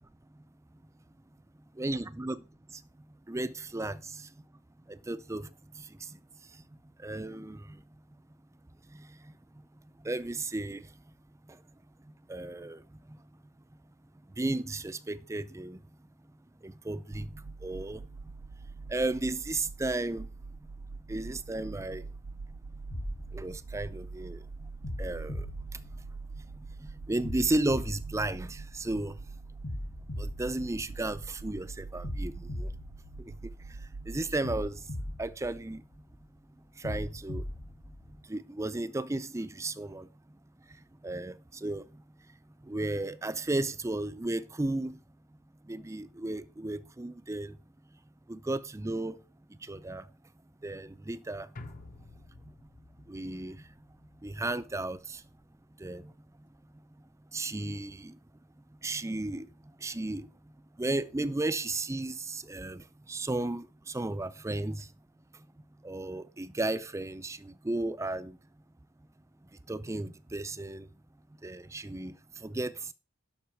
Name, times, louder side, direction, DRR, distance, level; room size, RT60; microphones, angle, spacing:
voice 1, 1.8-2.4 3.3-4.3 5.1-5.5 5.8-5.9 7.0-7.8 9.0-9.1 10.0-10.8 12.3-12.8 14.4-15.8 16.6-18.0 18.9-20.3 21.1-22.1 23.3-24.4 25.0-25.5 26.8-29.1 30.2-32.7 34.1-34.8 35.2-35.8 36.8-37.4 38.3-40.1 41.0-41.8 42.7-45.0 45.7-47.5 48.3-49.2 49.7-50.0 50.6-51.5 53.1-53.6 54.2-55.2 55.8-56.1 57.3-58.1 58.8-59.5 59.8-60.3 60.8-62.8 63.1-64.9 65.8-68.4 69.7-70.9 71.4-72.2 72.4-72.7, right 2 dB, 15° right, 0.4 m, -34 dB
sound 1, 17.1-34.4, right 3 dB, 85° right, 0.5 m, -44 dB
sound 2, 22.9-24.2 24.8-26.5 27.2-29.0 29.6-31.4 32.0-33.8 34.4-36.1 36.8-38.2, left 1 dB, 60° left, 1.9 m, -40 dB
sound 3, 51.6-56.0 56.3-56.4, left 2 dB, 35° left, 0.7 m, -52 dB
11.5 x 6.1 x 4.4 m
head